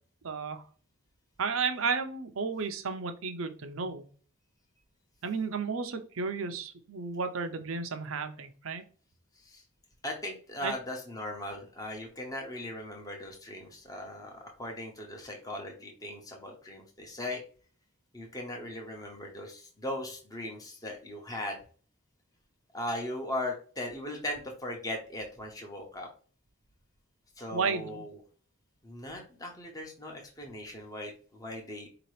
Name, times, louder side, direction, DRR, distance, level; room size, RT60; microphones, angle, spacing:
voice 1, 0.2-0.6 1.4-4.0 5.2-8.8 10.6-10.7 27.5-28.0, right 5 dB, 75° right, 7 dB, 0.7 m, -33 dB
voice 2, 10.0-17.4 18.1-21.6 22.7-26.1 27.4-28.1 28.8-31.9, left 1 dB, 15° left, 1 dB, 0.9 m, -38 dB
4.8 x 2.9 x 3.2 m, 0.40 s
head